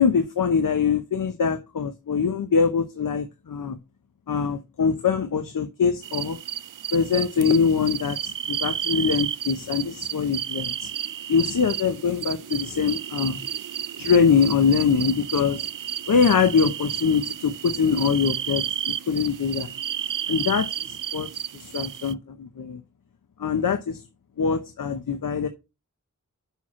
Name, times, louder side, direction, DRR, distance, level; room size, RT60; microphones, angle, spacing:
voice 1, 0.0-3.8 4.3-6.4 6.9-10.9 11.3-13.4 14.0-15.7 16.1-19.7 20.3-21.3 21.5-22.8 23.4-24.0 24.4-25.5, left 6 dB, 85° left, 1.0 m, -23 dB
sound 1, 6.0-22.1, right 10 dB, 75° right, 0.5 m, -32 dB
7.0 x 6.1 x 6.3 m
wide cardioid pair, 85°, 32 cm